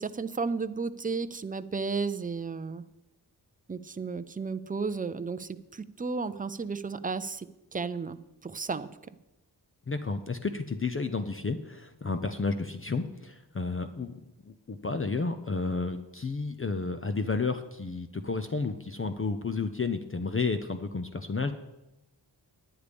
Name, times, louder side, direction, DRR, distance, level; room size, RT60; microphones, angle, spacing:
voice 1, 0.0-2.8 3.7-8.9, right 4 dB, 20° right, 12 dB, 0.4 m, -33 dB
voice 2, 9.9-21.5, left 4 dB, 30° left, 8 dB, 0.6 m, -32 dB
9.8 x 9.8 x 5.2 m, 0.96 s
wide cardioid pair, 90°, 43 cm